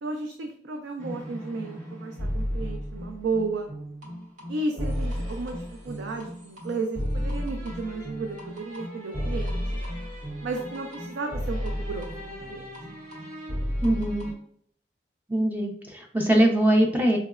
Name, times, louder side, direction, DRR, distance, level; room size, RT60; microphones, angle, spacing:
voice 1, 0.0-3.7 4.5-9.6 10.4-12.7, right 3 dB, 90° right, 3 dB, 0.4 m, -33 dB
sound 1, 1.0-14.3, equal, 45° right, 0.9 m, -33 dB
voice 2, 13.8-14.3 15.3-17.2, right 1 dB, 10° right, 1 dB, 0.4 m, -22 dB
4.5 x 2.0 x 2.3 m, 0.63 s
head